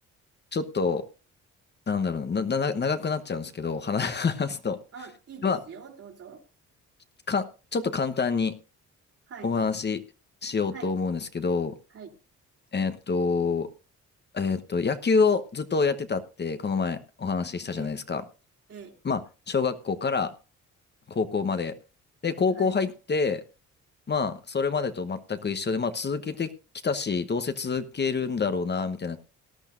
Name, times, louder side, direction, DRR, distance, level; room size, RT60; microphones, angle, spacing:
voice 1, 0.5-1.0 1.9-4.8 5.4-5.6 7.3-8.5 9.4-10.0 10.4-11.7 12.7-13.7 14.3-18.2 19.0-19.2 19.5-20.3 21.1-21.7 22.2-23.4 24.1-26.5 26.8-29.2, left 5 dB, 35° left, 10 dB, 1.1 m, -27 dB
voice 2, 4.9-6.4 9.3-9.5 10.7-10.9 11.9-12.1 17.6-17.9 18.7-19.0 22.5-22.8, right 6 dB, 50° right, 3 dB, 3.1 m, -44 dB
18.5 x 11.5 x 2.6 m, 0.32 s
cardioid pair, 90°, 30 cm